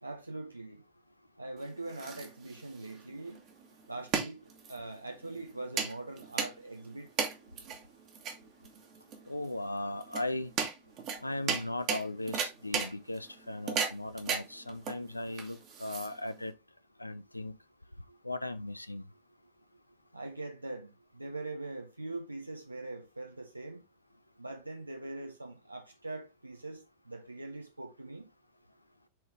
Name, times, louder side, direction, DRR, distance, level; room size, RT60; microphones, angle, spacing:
voice 1, 0.0-0.8 1.4-3.4 3.9-4.4 4.7-7.1 18.1-18.2 20.1-23.8 24.4-28.3, right 2 dB, 85° right, 1.4 m, -42 dB
sound 1, 1.6-16.5, right 6 dB, 35° right, 1.8 m, -37 dB
voice 2, 9.3-10.5 11.2-16.5 17.0-17.5 18.2-19.1, left 1 dB, 85° left, 0.5 m, -37 dB
7.5 x 4.0 x 3.5 m
figure-of-eight pair, 90°, 0 cm